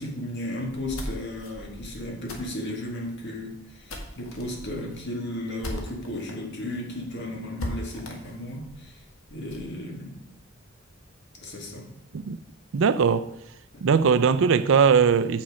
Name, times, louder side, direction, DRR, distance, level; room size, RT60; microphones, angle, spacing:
voice 1, 0.0-9.0 9.3-10.2 11.4-11.9, left 1 dB, 60° left, 1.9 m, -34 dB
sound 1, 0.7-6.3 6.7-6.8 7.1-7.2 7.6-9.7, left 1 dB, 85° left, 1.5 m, -39 dB
voice 2, 12.7-13.3 13.8-15.4, right 6 dB, 65° right, 0.4 m, -20 dB
7.3 x 6.0 x 5.0 m
head